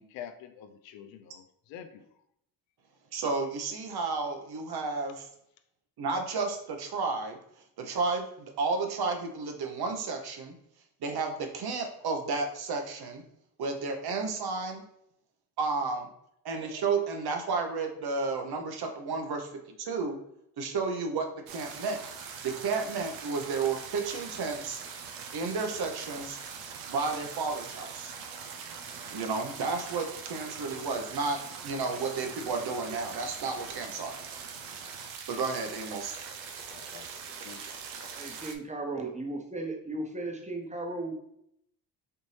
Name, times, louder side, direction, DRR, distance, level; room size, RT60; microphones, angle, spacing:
voice 1, 0.0-2.0 36.7-37.1 37.4-37.7 38.0-38.2, left 9 dB, 80° left, 9 dB, 0.6 m, -46 dB
voice 2, 3.1-5.3 6.0-7.4 7.8-10.5 11.0-13.2 13.6-14.8 15.6-16.1 16.4-20.2 20.6-22.0 22.4-24.8 25.3-26.4 26.9-28.1 29.1-34.2 35.3-36.1, right 4 dB, 55° right, 4 dB, 0.9 m, -32 dB
sound 1, 21.5-38.5, right 6 dB, 85° right, 0.6 m, -42 dB
voice 3, 38.1-41.1, right 2 dB, 15° right, 2 dB, 0.9 m, -36 dB
4.4 x 2.6 x 3.2 m, 0.74 s
supercardioid pair, 55°, 45 cm